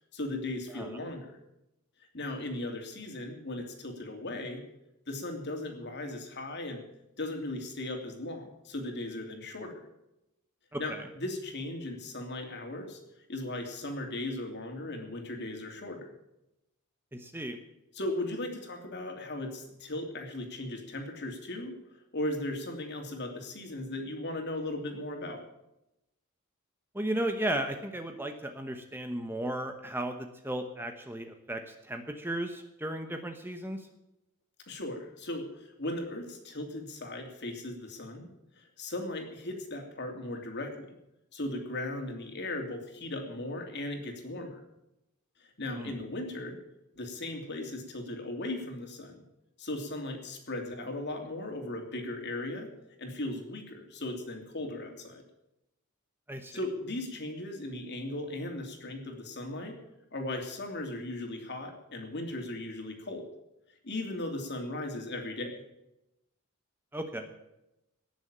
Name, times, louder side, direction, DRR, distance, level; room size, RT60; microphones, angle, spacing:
voice 1, 0.1-1.4 2.1-4.6 5.1-6.8 7.2-9.8 10.8-13.0 13.3-16.1 17.9-21.7 22.1-25.4 34.7-38.3 38.6-40.9 41.3-44.6 45.4-46.6 46.9-49.2 49.6-52.7 53.0-55.2 56.5-59.8 60.1-63.3 63.8-65.6, left 1 dB, 50° left, 3 dB, 2.9 m, -37 dB
voice 2, 10.7-11.0 17.1-17.6 26.9-33.8 45.7-45.9 56.3-56.5 66.9-67.3, right 1 dB, 10° right, 6 dB, 1.0 m, -35 dB
18.0 x 7.1 x 8.7 m, 0.89 s
head